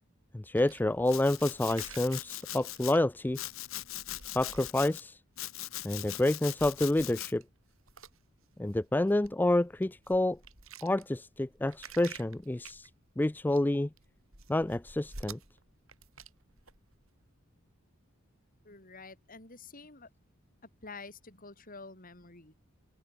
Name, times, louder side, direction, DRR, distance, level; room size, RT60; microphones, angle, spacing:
voice 1, 0.3-3.4 4.3-5.2 5.8-7.4 8.6-10.4 10.8-12.9 13.2-13.9 14.5-15.4, left 1 dB, 10° left, 0.3 m, -28 dB
sound 1, 0.6-5.3 5.8-6.3 6.6-17.3, right 5 dB, 70° right, 7.6 m, -52 dB
Domestic sounds home sounds, 1.1-2.9 3.3-5.0 5.4-7.3, left 14 dB, 70° left, 1.2 m, -41 dB
voice 2, 18.6-20.1 20.8-22.5, left 3 dB, 40° left, 4.4 m, -48 dB
head